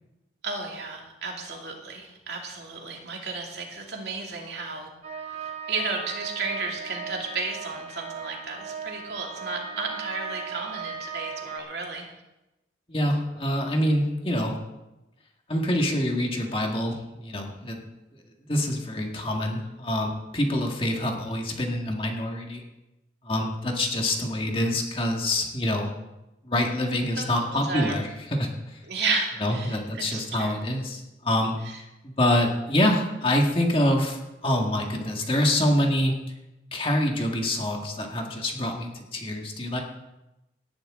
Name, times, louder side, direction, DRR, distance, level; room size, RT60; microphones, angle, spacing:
voice 1, 0.4-4.9 5.2-12.1 27.2-27.9 28.8-30.5 31.6-31.8, right 4 dB, 65° right, 0 dB, 2.7 m, -33 dB
sound 1, 5.0-11.6, right 6 dB, 35° right, 1.1 m, -37 dB
voice 2, 12.9-14.6 15.5-17.8 18.5-22.6 23.2-25.9 26.4-28.8 29.4-36.1 36.7-39.8, left 1 dB, 30° left, 1 dB, 1.9 m, -26 dB
18.5 x 10.5 x 3.8 m, 0.98 s
head